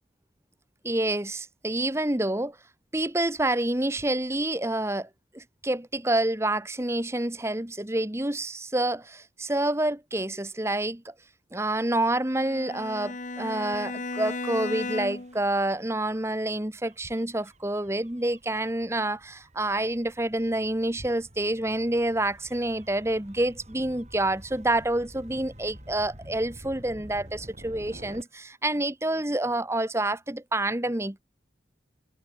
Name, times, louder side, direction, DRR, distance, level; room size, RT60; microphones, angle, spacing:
voice 1, 0.8-2.6 2.9-5.1 5.3-11.1 11.5-31.2, right 1 dB, 15° right, 1.3 m, -28 dB
Bowed string instrument, 12.3-15.4, left 3 dB, 45° left, 1.7 m, -35 dB
Gull seagull / Waves surf / Siren, 13.5-28.2, equal, 40° right, 6.6 m, -50 dB
head